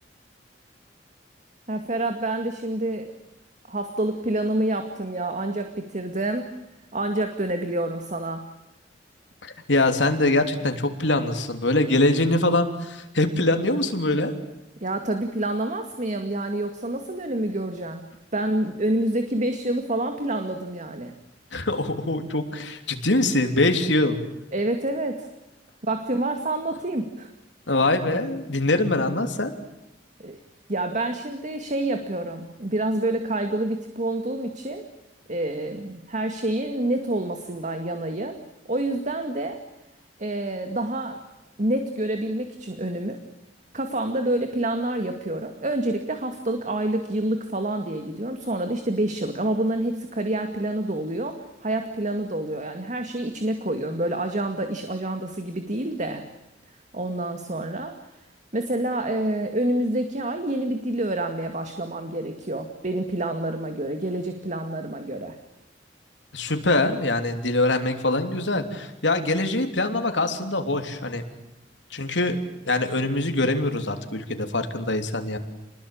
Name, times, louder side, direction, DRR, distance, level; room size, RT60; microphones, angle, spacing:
voice 1, 1.7-3.1 3.7-6.5 6.9-8.5 14.8-21.1 24.5-25.3 25.8-27.3 30.2-30.4 30.7-34.9 35.3-38.4 38.7-39.6 40.2-41.2 41.6-43.2 43.7-56.2 56.9-58.0 58.5-65.4, right 1 dB, 45° right, 6 dB, 2.2 m, -27 dB
voice 2, 9.4-14.3 21.5-24.2 27.7-29.5 66.3-71.2 71.9-72.4 72.7-75.4, left 2 dB, 80° left, 6 dB, 3.3 m, -23 dB
29.0 x 21.0 x 8.8 m, 0.92 s
head